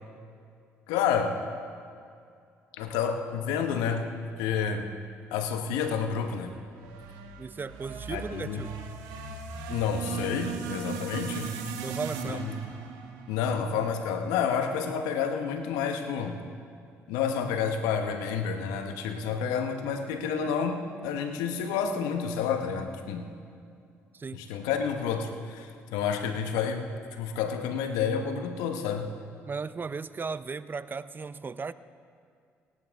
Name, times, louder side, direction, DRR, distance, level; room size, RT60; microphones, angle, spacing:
voice 1, 0.9-1.4 2.8-4.1 4.4-4.9 5.3-6.5 8.1-8.6 9.7-11.5 12.2-12.5 13.3-16.4 17.1-23.3 24.3-26.8 27.1-29.1, left 7 dB, 80° left, 6 dB, 1.1 m, -29 dB
sound 1, 5.9-14.3, right 5 dB, 80° right, 1.4 m, -38 dB
voice 2, 7.4-8.7 11.8-12.4 24.1-24.4 29.5-31.7, right 4 dB, 30° right, 15 dB, 0.6 m, -36 dB
17.0 x 17.0 x 3.6 m, 2.4 s
hypercardioid pair, 50°, 6 cm